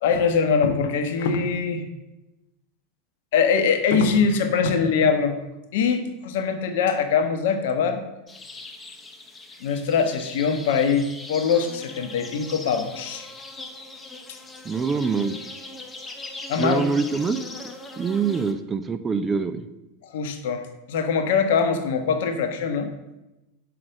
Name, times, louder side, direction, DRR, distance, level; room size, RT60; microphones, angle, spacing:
voice 1, 0.0-1.8 3.3-5.3 5.7-8.0 9.6-13.3 16.5-16.8 20.1-20.6 20.9-22.9, left 6 dB, 60° left, 7 dB, 0.9 m, -22 dB
sound 1, 8.3-18.5, left 2 dB, 15° left, 0.8 m, -40 dB
voice 2, 14.6-15.5 16.6-17.6 18.0-19.7, right 5 dB, 20° right, 11 dB, 0.5 m, -25 dB
5.8 x 4.8 x 6.3 m, 0.98 s
figure-of-eight pair, 85°, 0 cm